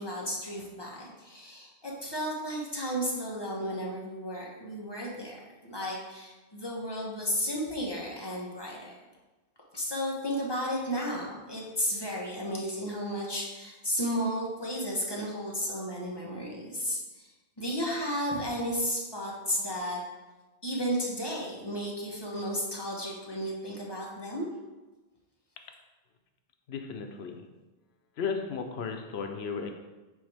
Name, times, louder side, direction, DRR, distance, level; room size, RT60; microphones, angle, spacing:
voice 1, 0.0-5.3 5.6-9.0 9.7-17.3 17.6-20.0 20.6-24.5, equal, 25° left, -3 dB, 1.2 m, -33 dB
voice 2, 26.7-27.4 28.2-29.7, left 5 dB, 85° left, 5 dB, 1.0 m, -34 dB
9.0 x 3.5 x 3.4 m, 1.2 s
omnidirectional pair, 1.0 m